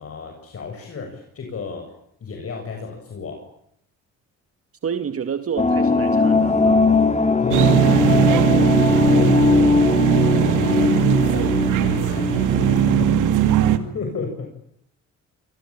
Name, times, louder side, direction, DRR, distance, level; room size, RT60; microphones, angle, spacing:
voice 1, 0.0-1.9 2.2-3.5 7.4-14.5, left 4 dB, 50° left, 2 dB, 7.7 m, -33 dB
voice 2, 4.8-6.8, right 7 dB, 50° right, 9 dB, 2.2 m, -29 dB
sound 1, 5.6-13.0, left 4 dB, 25° left, 2.6 m, -20 dB
sound 2, 7.5-13.8, right 9 dB, 90° right, 2.5 m, -19 dB
28.0 x 24.0 x 9.0 m, 0.73 s
cardioid pair, 90°, 30 cm